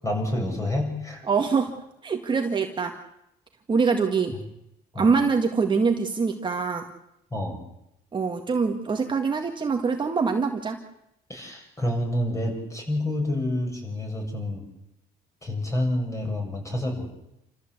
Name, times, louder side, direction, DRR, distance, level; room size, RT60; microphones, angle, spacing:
voice 1, 0.0-1.2 4.9-5.2 7.3-7.6 11.3-14.6 15.4-17.1, left 1 dB, 20° left, 2 dB, 7.9 m, -28 dB
voice 2, 1.3-1.7 2.0-2.9 3.7-4.3 5.0-6.9 8.1-10.8, right 5 dB, 30° right, 3 dB, 2.0 m, -24 dB
28.5 x 14.5 x 8.4 m, 0.84 s
cardioid pair, 110°, 17 cm